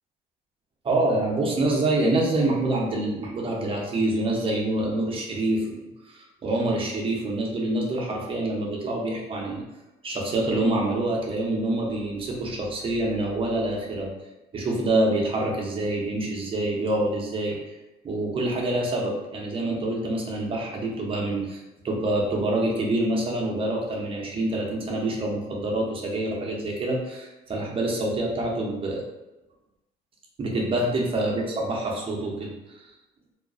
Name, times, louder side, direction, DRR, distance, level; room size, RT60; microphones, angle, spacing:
voice 1, 0.8-5.8 6.1-9.6 10.0-14.1 14.5-17.6 18.0-29.0 30.4-32.5 32.8-32.9, right 2 dB, 35° right, -1 dB, 0.6 m, -26 dB
2.3 x 2.1 x 2.4 m, 1.0 s
cardioid pair, 110°, 17 cm